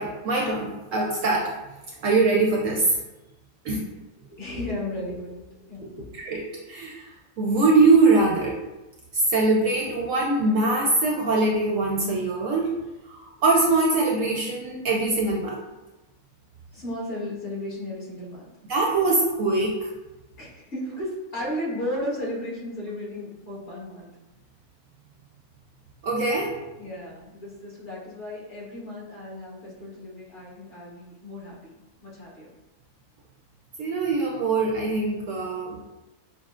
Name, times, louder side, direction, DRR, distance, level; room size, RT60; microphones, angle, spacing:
voice 1, 0.0-1.5 2.0-2.9 3.6-3.8 6.2-6.4 6.7-7.0 7.4-8.6 9.1-12.7 13.1-15.6 18.7-19.9 26.0-26.5 33.8-35.8, right 3 dB, 70° right, -1 dB, 0.8 m, -22 dB
voice 2, 4.4-6.0 16.7-18.4 20.4-24.1 26.8-31.7 32.0-32.5, left 1 dB, 50° left, -8 dB, 1.7 m, -34 dB
6.1 x 2.0 x 2.4 m, 1.0 s
omnidirectional pair, 1.6 m